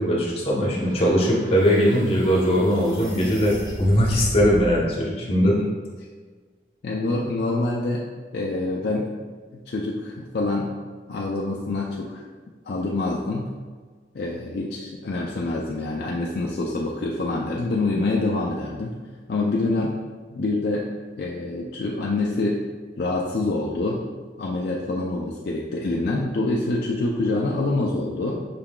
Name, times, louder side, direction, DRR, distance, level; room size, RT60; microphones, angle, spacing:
voice 1, 0.0-5.5, equal, 30° left, -4 dB, 0.9 m, -20 dB
sound 1, 0.7-4.8, equal, 20° right, 1.3 m, -35 dB
voice 2, 5.3-5.7 6.8-8.0 8.3-9.1 9.5-10.7 11.1-12.2 12.7-13.5 14.1-19.0 19.3-20.0 20.3-20.9 21.2-22.6 23.0-24.0 24.4-28.5, left 2 dB, 55° left, -3 dB, 0.4 m, -26 dB
5.6 x 3.6 x 2.3 m, 1.5 s
head